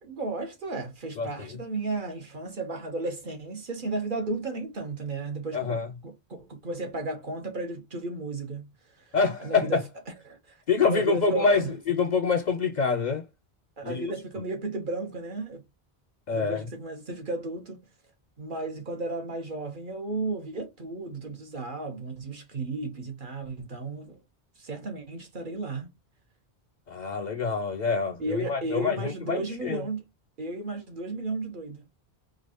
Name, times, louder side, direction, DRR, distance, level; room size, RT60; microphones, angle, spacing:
voice 1, 0.0-9.1 9.4-9.8 10.2-11.7 13.8-15.6 16.3-17.8 18.4-24.2 24.6-25.9 28.2-30.1 30.4-31.8, right 2 dB, 55° right, 1.2 m, -34 dB
voice 2, 1.2-1.5 5.5-5.9 9.1-9.7 10.7-13.2 13.8-14.1 16.3-16.7 26.9-29.8, left 5 dB, 55° left, 0.6 m, -26 dB
4.5 x 2.4 x 2.8 m
omnidirectional pair, 1.1 m